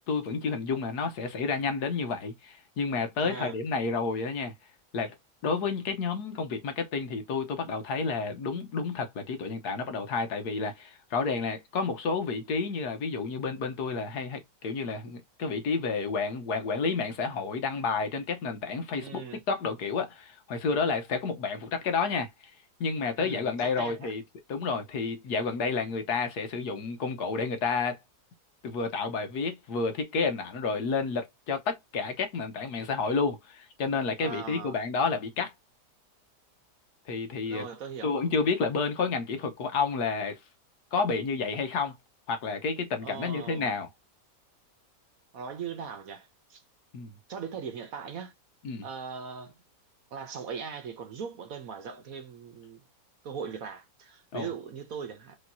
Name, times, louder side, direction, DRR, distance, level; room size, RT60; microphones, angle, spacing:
voice 1, 0.0-4.5 4.9-5.1 5.4-22.5 22.8-24.2 24.5-28.0 28.6-35.5 37.1-37.6 38.0-40.4 40.9-42.0 42.3-43.9 46.9-47.1 48.6-48.9 54.3-54.5, left 4 dB, 70° left, 1.5 m, -30 dB
voice 2, 3.2-3.5 19.0-19.4 23.2-24.1 34.2-34.8 37.5-38.1 43.0-43.7 45.3-46.6 47.3-48.3 48.8-49.5 50.1-52.8 53.2-55.4, right 6 dB, 60° right, 1.2 m, -39 dB
5.0 x 3.1 x 2.6 m
omnidirectional pair, 1.8 m